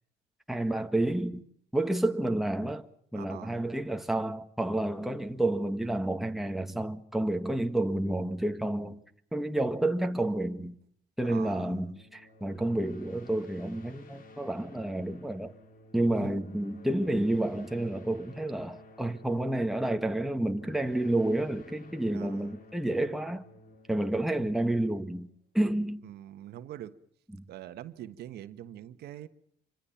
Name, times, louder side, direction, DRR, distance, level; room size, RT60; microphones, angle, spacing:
voice 1, 0.5-1.4 1.7-2.9 3.1-9.0 9.3-10.8 11.2-15.5 15.9-23.5 23.9-25.3 25.5-26.0 27.3-27.4, right 1 dB, ahead, 1.7 m, -30 dB
voice 2, 3.1-3.6 11.2-11.8 16.2-16.3 22.1-22.5 26.0-26.9 27.5-29.3, right 12 dB, 70° right, 1.5 m, -44 dB
sound 1, 12.0-25.3, left 2 dB, 55° left, 4.1 m, -54 dB
27.0 x 25.0 x 5.8 m
cardioid pair, 110°, 17 cm